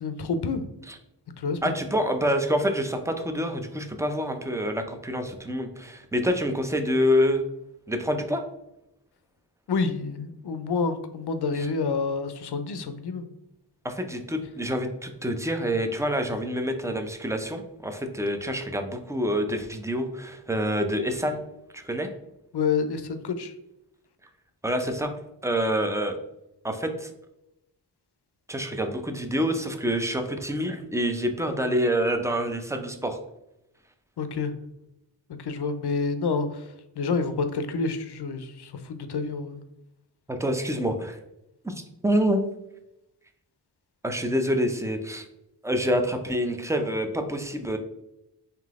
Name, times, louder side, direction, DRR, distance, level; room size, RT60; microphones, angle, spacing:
voice 1, 0.0-0.6 1.4-1.7 9.7-13.3 22.5-23.5 34.2-34.5 35.4-39.6, left 4 dB, 65° left, 9 dB, 0.6 m, -28 dB
voice 2, 1.6-7.4 7.9-8.4 13.8-21.4 21.7-22.1 24.6-25.1 25.4-26.1 26.6-27.1 28.5-33.2 40.3-41.2 41.6-41.7 42.0-42.4 44.0-45.2 45.6-47.8, equal, 5° right, 6 dB, 0.5 m, -27 dB
3.8 x 2.8 x 3.5 m, 0.86 s
wide cardioid pair, 65°, 44 cm